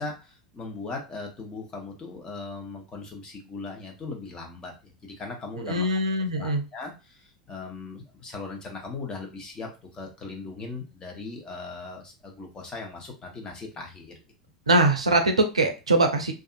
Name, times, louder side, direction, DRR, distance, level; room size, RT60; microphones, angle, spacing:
voice 1, 0.0-5.9 6.3-14.2, left 3 dB, 25° left, 1 dB, 0.9 m, -39 dB
voice 2, 5.6-6.6 14.7-16.3, right 2 dB, 80° right, 6 dB, 0.4 m, -22 dB
2.6 x 2.4 x 2.4 m, 0.29 s
figure-of-eight pair, 80°, 3 cm